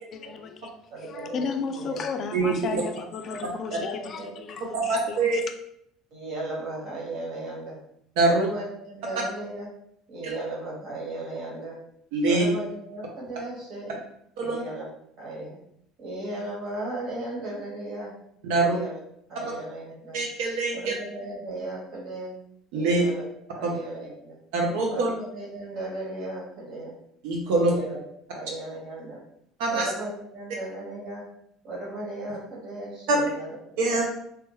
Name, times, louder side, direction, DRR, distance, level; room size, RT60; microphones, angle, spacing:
voice 1, 0.1-0.7 1.1-5.4, left 5 dB, 40° left, 7 dB, 0.3 m, -34 dB
voice 2, 0.9-1.5 1.8-2.1 3.2-3.4 3.7-4.3 6.1-7.8 8.2-9.7 10.1-11.8 12.3-14.0 14.4-14.9 15.2-15.6 16.0-18.1 18.5-19.0 19.3-20.2 20.7-22.4 22.7-24.4 24.9-26.9 27.5-28.0 28.3-29.2 29.7-31.3 31.6-33.6, right 2 dB, 55° right, -4 dB, 1.5 m, -36 dB
voice 3, 4.7-5.4 8.2-8.5 12.1-12.5 14.4-14.6 18.4-18.8 20.1-20.9 22.7-23.0 23.6-23.8 24.5-25.1 27.2-27.7 29.6-29.9 33.1-33.2 33.8-34.0, right 3 dB, 85° right, 0 dB, 0.7 m, -23 dB
3.4 x 2.2 x 3.1 m, 0.73 s
cardioid pair, 135°, 0 cm